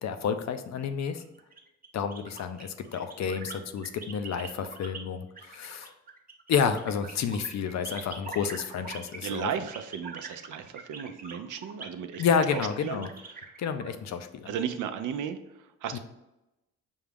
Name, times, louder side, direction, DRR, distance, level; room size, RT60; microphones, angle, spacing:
voice 1, 0.0-1.2 1.9-5.9 6.5-9.5 12.2-13.1 13.6-14.5 15.9-16.0, left 7 dB, 55° left, 9 dB, 0.5 m, -30 dB
sound 1, 1.0-5.0 5.4-13.9, right 4 dB, 25° right, 0.8 m, -44 dB
voice 2, 9.2-12.2 12.5-13.0 13.3-13.4 14.5-15.4 15.8-16.0, right 8 dB, 65° right, 9 dB, 0.5 m, -34 dB
5.3 x 2.3 x 3.4 m, 0.93 s
cardioid pair, 70°, 33 cm